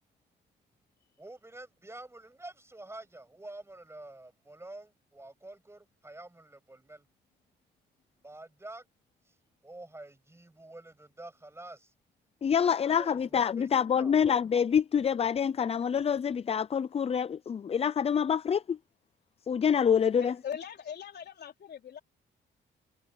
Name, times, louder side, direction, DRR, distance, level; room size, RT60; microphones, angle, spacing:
voice 1, 1.2-7.1 8.2-8.9 9.2-9.3 9.6-11.9 12.6-14.2, right 2 dB, 15° right, 7.9 m, -48 dB
voice 2, 12.4-18.8 19.5-20.3, left 7 dB, 30° left, 0.4 m, -26 dB
voice 3, 20.2-22.0, left 8 dB, 55° left, 3.9 m, -40 dB
cardioid pair, 90°, 20 cm